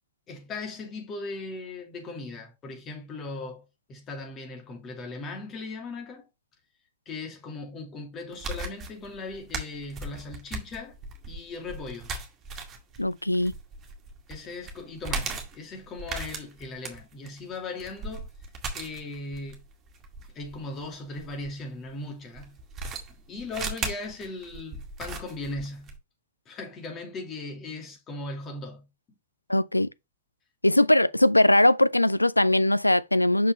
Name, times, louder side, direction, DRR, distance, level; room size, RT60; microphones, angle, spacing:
voice 1, 0.3-6.3 7.1-10.9 11.2-12.1 14.3-18.3 18.7-19.6 20.3-22.6 23.1-25.9 26.5-28.9, left 3 dB, 30° left, 2.8 m, -38 dB
sound 1, 8.3-21.5 22.4-26.0, right 3 dB, 25° right, 2.1 m, -37 dB
voice 2, 13.0-13.5 29.5-29.9 30.6-33.5, left 1 dB, 85° left, 0.3 m, -20 dB
6.6 x 5.5 x 3.2 m
figure-of-eight pair, 90°, 0 cm